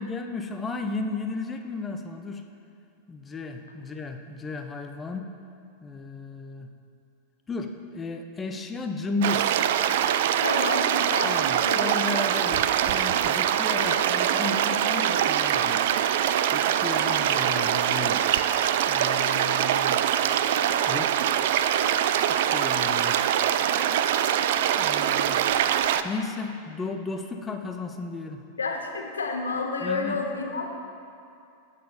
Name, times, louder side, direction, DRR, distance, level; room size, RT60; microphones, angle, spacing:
voice 1, 0.0-2.4 3.1-5.3 5.8-6.7 7.5-9.6 11.2-15.8 16.5-18.2 18.9-20.0 20.9-21.3 22.3-23.2 24.8-25.4 26.0-28.4 29.8-30.2, left 3 dB, 20° left, 5 dB, 0.9 m, -34 dB
sound 1, 9.2-26.0, right 10 dB, 55° right, 0.4 m, -23 dB
voice 2, 10.4-11.8 12.2-12.3 13.8-14.0 28.6-30.7, left 3 dB, 75° left, 1 dB, 1.4 m, -30 dB
17.0 x 6.8 x 5.3 m, 2.5 s
figure-of-eight pair, 90°, 0 cm